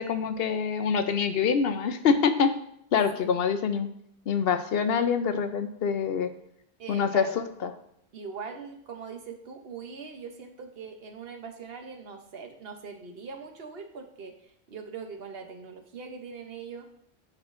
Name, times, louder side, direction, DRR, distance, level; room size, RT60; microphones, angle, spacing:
voice 1, 0.0-2.5 2.9-3.9 4.3-6.3 6.9-7.2 7.6-7.7, left 6 dB, 70° left, 9 dB, 0.8 m, -25 dB
voice 2, 6.8-7.4 8.1-16.9, right 5 dB, 65° right, 5 dB, 1.0 m, -41 dB
10.5 x 6.0 x 2.5 m, 0.72 s
omnidirectional pair, 1.1 m